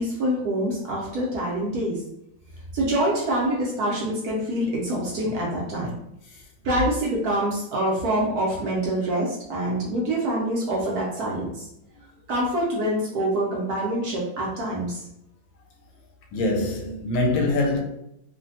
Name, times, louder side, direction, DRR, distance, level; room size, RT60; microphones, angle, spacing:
voice 1, 0.0-2.0 2.7-5.9 6.6-11.6 12.3-15.0, right 1 dB, 65° right, 1.0 m, -25 dB
voice 2, 16.3-17.8, left 2 dB, 80° left, 1.3 m, -23 dB
3.2 x 2.1 x 2.6 m
omnidirectional pair, 2.0 m